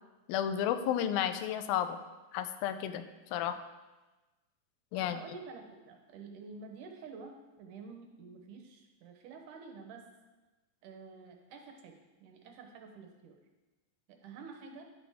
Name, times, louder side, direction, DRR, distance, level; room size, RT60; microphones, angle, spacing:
voice 1, 0.3-2.0 2.3-3.0 3.3-3.6 4.9-5.2, left 10 dB, 90° left, 9 dB, 2.4 m, -32 dB
voice 2, 4.9-10.0 10.8-13.4 14.1-14.8, right 4 dB, 75° right, 3 dB, 2.2 m, -49 dB
11.0 x 8.7 x 3.5 m, 1.2 s
omnidirectional pair, 4.1 m